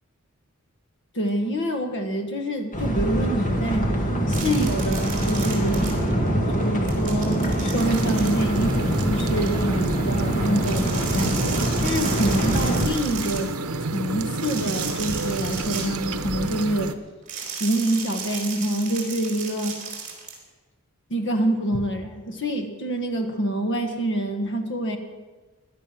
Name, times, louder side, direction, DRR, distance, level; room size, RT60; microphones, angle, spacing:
voice 1, 1.1-3.9 4.3-5.9 6.5-11.4 11.8-13.5 13.8-16.9 17.6-19.8 21.1-25.0, right 1 dB, 55° left, 5 dB, 1.5 m, -26 dB
sound 1, 2.7-12.8, right 1 dB, 35° left, 2.0 m, -24 dB
sound 2, 4.3-6.3 6.6-9.5 10.6-13.5 14.3-16.6 17.3-20.3, right 6 dB, 40° right, 4.0 m, -35 dB
sound 3, 7.7-16.9, right 3 dB, 85° right, 0.9 m, -30 dB
17.0 x 11.5 x 6.0 m, 1.2 s
head